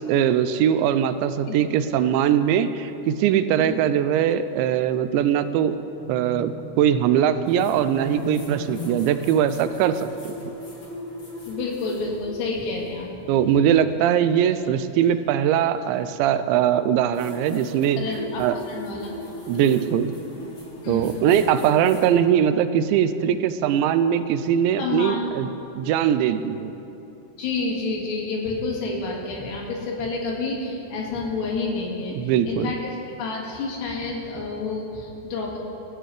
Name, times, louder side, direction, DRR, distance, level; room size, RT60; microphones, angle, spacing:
voice 1, 0.1-5.8 6.1-10.3 13.3-18.0 18.4-18.6 19.5-20.1 20.9-25.5 25.8-26.7 32.2-32.7, right 9 dB, 85° right, 11 dB, 2.9 m, -21 dB
sound 1, 6.0-11.5, right 2 dB, 35° right, 5.0 m, -44 dB
sound 2, 7.5-13.0 15.0-15.1 17.1-22.1, left 1 dB, 30° left, 2.5 m, -37 dB
voice 2, 11.5-13.2 18.0-19.4 20.8-21.2 24.8-25.3 27.4-32.2 32.4-32.8 33.2-35.6, left 3 dB, 75° left, -2 dB, 4.0 m, -29 dB
24.5 x 13.0 x 3.3 m, 2.9 s
omnidirectional pair, 5.1 m